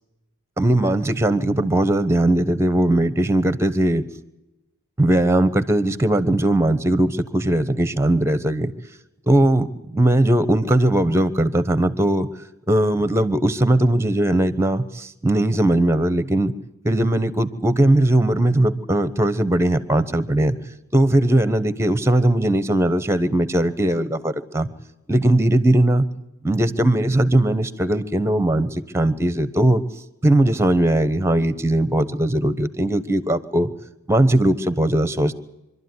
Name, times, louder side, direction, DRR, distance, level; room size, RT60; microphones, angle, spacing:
voice 1, 0.6-4.0 5.0-8.7 9.3-9.7 9.9-12.3 12.7-16.5 16.8-20.6 20.9-24.7 25.1-26.1 26.4-29.8 30.2-33.7 34.1-35.4, right 1 dB, 10° right, 14 dB, 1.0 m, -19 dB
25.5 x 12.5 x 9.6 m, 0.96 s
head